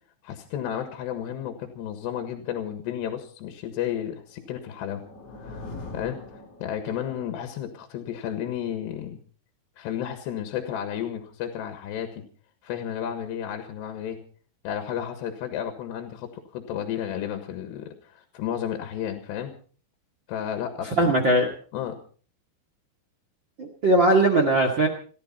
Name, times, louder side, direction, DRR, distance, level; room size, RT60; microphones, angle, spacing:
voice 1, 0.2-5.0 5.4-5.7 5.9-9.2 9.8-12.3 12.6-14.2 14.7-19.5 20.3-21.1 21.7-22.0, left 10 dB, 75° left, 6 dB, 3.6 m, -32 dB
sound 1, 4.3-7.2, left 2 dB, 35° left, 4.3 m, -42 dB
voice 2, 20.8-21.5 23.6-24.9, right 2 dB, 40° right, 2 dB, 1.8 m, -20 dB
30.0 x 11.0 x 4.3 m, 0.43 s
omnidirectional pair, 5.1 m